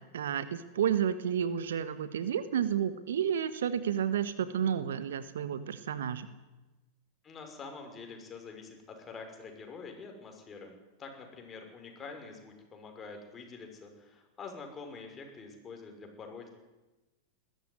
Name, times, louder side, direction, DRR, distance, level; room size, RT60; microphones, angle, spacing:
voice 1, 0.1-6.3, right 8 dB, 70° right, 13 dB, 1.4 m, -31 dB
voice 2, 7.2-16.5, left 4 dB, 25° left, 4 dB, 6.0 m, -46 dB
21.0 x 14.5 x 9.7 m, 1.1 s
figure-of-eight pair, 95°, 0 cm